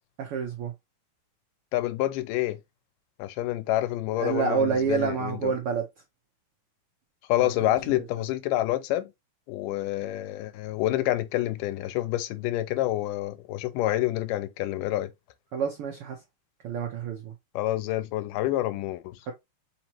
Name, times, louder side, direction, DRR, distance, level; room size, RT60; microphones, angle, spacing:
voice 1, 0.2-0.7 4.2-5.8 15.5-16.2 16.6-17.3 19.3-19.4, right 6 dB, 80° right, 1.2 m, -28 dB
voice 2, 1.7-2.6 3.2-5.5 7.3-9.1 9.5-15.1 17.6-19.2, left 15 dB, 90° left, 2.2 m, -28 dB
4.9 x 3.0 x 2.8 m
omnidirectional pair, 3.7 m